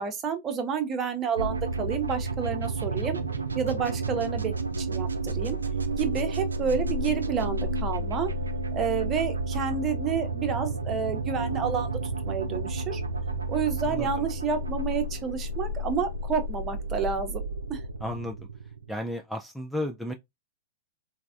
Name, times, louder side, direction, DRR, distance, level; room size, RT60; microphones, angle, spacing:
voice 1, 0.0-3.2 3.5-5.6 6.0-8.3 8.7-13.0 13.5-17.4 17.7-17.8, right 6 dB, 30° right, 0.7 m, -30 dB
sound 1, 1.4-19.1, right 2 dB, 90° right, 0.3 m, -31 dB
voice 2, 18.0-18.5 18.9-20.1, left 1 dB, ahead, 0.3 m, -33 dB
3.2 x 2.1 x 2.4 m
hypercardioid pair, 105°, 0 cm